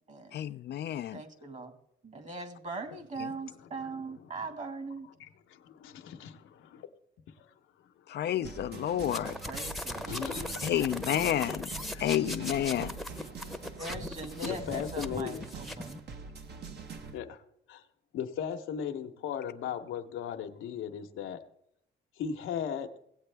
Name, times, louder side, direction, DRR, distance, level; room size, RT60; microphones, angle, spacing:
voice 1, 0.3-1.2 3.2-3.3 8.1-9.3 10.6-11.7 12.0-12.9, left 11 dB, 60° left, 0.4 m, -30 dB
voice 2, 1.1-1.7 2.0-5.1 9.4-10.5 13.8-15.9, right 3 dB, 40° right, 1.8 m, -41 dB
voice 3, 3.4-4.3 5.2-6.5 7.4-7.5 9.9-10.8 11.9-12.1 13.3-13.7 14.4-15.4 17.1-17.4 17.7-17.8 18.1-21.4 22.2-22.9, left 8 dB, 85° left, 0.9 m, -38 dB
sound 1, 8.4-17.2, right 4 dB, 55° right, 1.1 m, -44 dB
sound 2, 9.0-16.0, left 1 dB, ahead, 0.8 m, -39 dB
17.5 x 8.1 x 3.4 m
cardioid pair, 90°, 20 cm